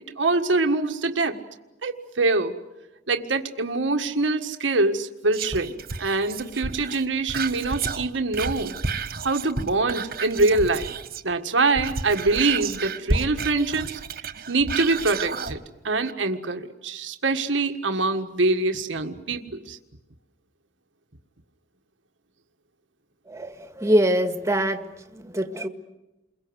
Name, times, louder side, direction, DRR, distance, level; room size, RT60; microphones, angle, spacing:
voice 1, 0.2-1.4 1.8-2.6 3.1-8.7 9.2-10.9 11.2-14.0 14.5-19.8, right 3 dB, 80° right, 5 dB, 1.7 m, -24 dB
Whispering, 5.3-11.3 11.6-15.6 16.0-16.1, right 4 dB, 50° right, 1.4 m, -31 dB
voice 2, 23.3-24.8 25.1-25.7, right 1 dB, 15° right, 7 dB, 1.8 m, -23 dB
29.0 x 22.5 x 8.1 m, 1.0 s
head